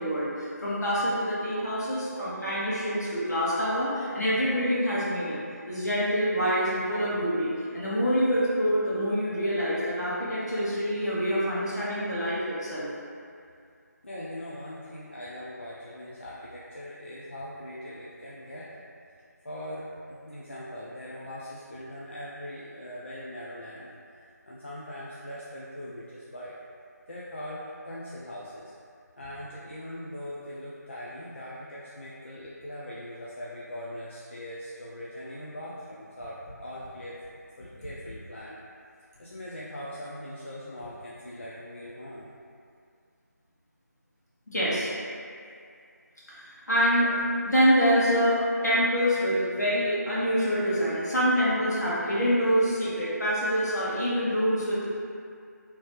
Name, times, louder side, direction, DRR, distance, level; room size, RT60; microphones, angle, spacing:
voice 1, 0.0-5.4 5.7-12.9 44.5-44.9 46.3-47.1 47.4-54.9, equal, 65° left, -9 dB, 1.3 m, -26 dB
voice 2, 14.0-18.7 19.4-26.5 27.1-28.7 29.2-37.2 37.6-38.6 39.2-42.2, left 1 dB, 45° left, -7 dB, 0.4 m, -41 dB
3.1 x 2.9 x 3.0 m, 2.3 s
figure-of-eight pair, 165°, 9 cm